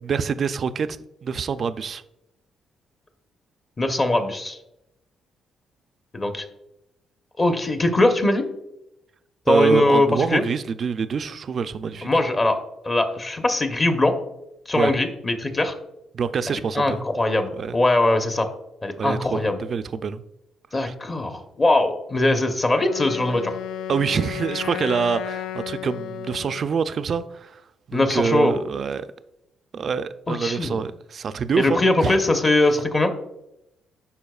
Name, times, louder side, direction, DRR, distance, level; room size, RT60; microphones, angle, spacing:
voice 1, 0.0-2.0 9.5-12.1 14.7-14.9 16.1-17.0 17.6-17.8 19.0-20.2 20.8-20.9 23.9-27.6 27.9-29.1 29.7-32.2, right 6 dB, 50° right, 0.3 m, -25 dB
voice 2, 3.8-4.6 6.1-6.4 7.4-8.4 9.5-10.4 12.0-12.6 12.8-14.1 14.7-15.7 16.5-18.5 18.8-19.6 20.7-23.6 27.9-28.6 30.3-30.8 31.6-33.1, left 2 dB, 30° left, 0.8 m, -21 dB
Wind instrument woodwind instrument, 22.8-26.8, left 10 dB, 85° left, 0.3 m, -33 dB
11.0 x 4.2 x 2.3 m
cardioid pair, 90°, 0 cm